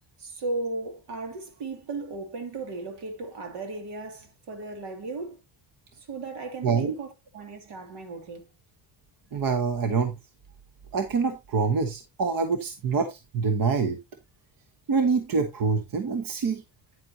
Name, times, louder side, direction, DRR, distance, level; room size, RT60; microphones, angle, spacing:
voice 1, 0.2-5.4 6.0-8.5, right 3 dB, 75° right, 2.7 m, -36 dB
voice 2, 9.3-10.1 10.9-14.0 14.9-16.6, right 5 dB, 55° right, 1.3 m, -25 dB
9.6 x 7.6 x 2.8 m
cardioid pair, 130°, 41 cm